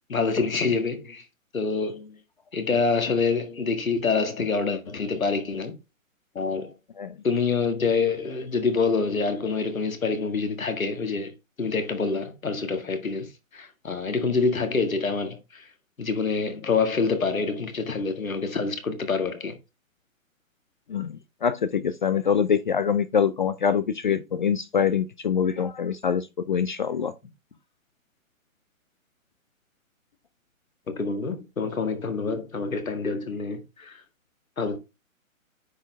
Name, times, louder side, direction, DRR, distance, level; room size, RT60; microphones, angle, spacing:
voice 1, 0.1-1.2 1.5-2.1 2.5-5.7 6.4-6.7 7.2-11.3 11.6-15.7 16.0-19.6 30.9-34.0 34.6-34.8, left 4 dB, 75° left, 1.8 m, -26 dB
voice 2, 21.4-27.1, left 7 dB, 40° left, 0.4 m, -24 dB
9.4 x 4.4 x 3.2 m
figure-of-eight pair, 130°, 41 cm